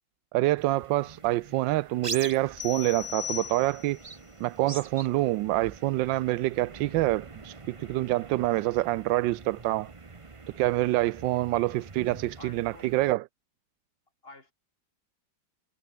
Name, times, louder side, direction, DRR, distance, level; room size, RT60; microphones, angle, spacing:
voice 1, 0.3-4.0 4.4-9.9 10.5-13.2, right 17 dB, 85° right, 1.3 m, -26 dB
sound 1, 0.6-13.1, right 4 dB, 25° right, 0.8 m, -44 dB
sound 2, 2.6-4.1, left 10 dB, 55° left, 0.8 m, -38 dB
voice 2, 12.4-13.0 14.2-14.5, left 2 dB, 30° left, 4.7 m, -49 dB
omnidirectional pair, 2.0 m